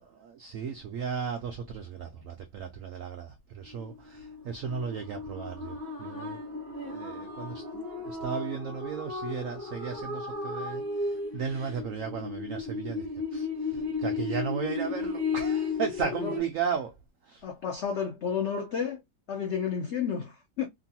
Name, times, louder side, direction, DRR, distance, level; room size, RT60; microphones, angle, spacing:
voice 1, 0.1-6.4 6.8-16.9 17.2-17.4, right 6 dB, 85° right, 0.7 m, -35 dB
sound 1, 3.7-16.4, left 3 dB, 35° right, 1.0 m, -34 dB
voice 2, 17.4-19.0 19.3-20.7, left 7 dB, 90° left, 0.6 m, -31 dB
3.0 x 2.6 x 2.7 m
omnidirectional pair, 2.0 m